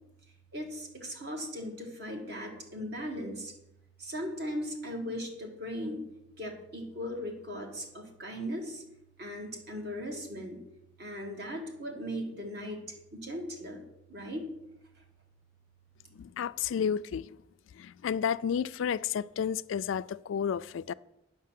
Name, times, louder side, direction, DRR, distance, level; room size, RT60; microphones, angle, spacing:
voice 1, 0.5-3.5 4.0-6.1 6.4-8.8 9.2-10.6 11.0-12.8 13.1-13.8 14.1-14.5, equal, 55° right, 2.0 m, -38 dB
voice 2, 16.2-17.3 17.8-20.9, left 7 dB, 80° left, 0.3 m, -31 dB
8.6 x 5.9 x 7.4 m
head